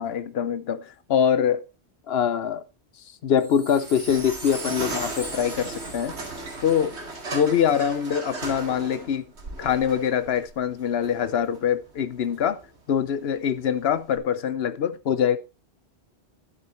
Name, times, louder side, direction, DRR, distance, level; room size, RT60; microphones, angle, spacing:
voice 1, 0.0-1.6 2.1-2.6 3.2-6.2 6.6-7.0 7.3-9.3 9.6-12.6 12.9-15.4, left 8 dB, 70° left, 1.0 m, -24 dB
Wind chime, 3.3-7.7 8.3-8.4, right 2 dB, 20° right, 1.2 m, -40 dB
sound 1, 3.7-14.2, right 3 dB, 85° right, 2.5 m, -38 dB
11.5 x 7.1 x 4.4 m
omnidirectional pair, 1.1 m